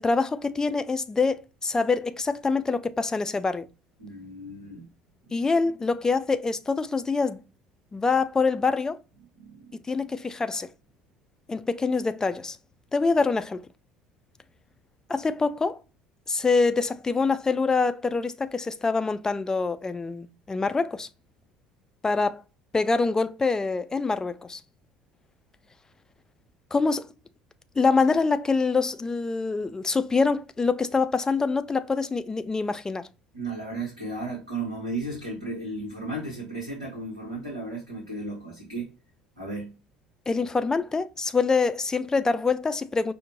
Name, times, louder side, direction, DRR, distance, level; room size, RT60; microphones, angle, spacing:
voice 1, 0.0-3.7 5.3-7.4 7.9-9.0 9.9-10.7 11.5-12.6 12.9-13.7 15.1-15.8 16.3-21.1 22.0-22.4 22.7-24.6 26.7-27.1 27.8-33.1 40.3-43.1, left 4 dB, 15° left, 0.3 m, -25 dB
voice 2, 4.0-4.9 5.2-5.5 9.4-9.7 33.3-38.9 39.3-39.7, right 2 dB, 85° right, 0.9 m, -34 dB
5.0 x 2.1 x 2.7 m
figure-of-eight pair, 60°, 4 cm